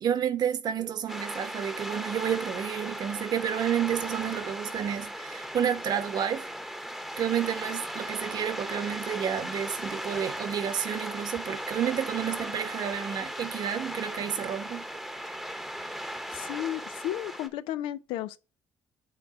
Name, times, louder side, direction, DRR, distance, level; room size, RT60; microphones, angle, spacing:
voice 1, 0.0-6.4 7.2-14.8, right 9 dB, 50° right, 1.0 m, -30 dB
sound 1, 1.1-17.5, equal, ahead, 0.9 m, -37 dB
voice 2, 16.3-18.4, left 12 dB, 90° left, 0.5 m, -33 dB
8.6 x 3.6 x 4.8 m
cardioid pair, 120°, 9 cm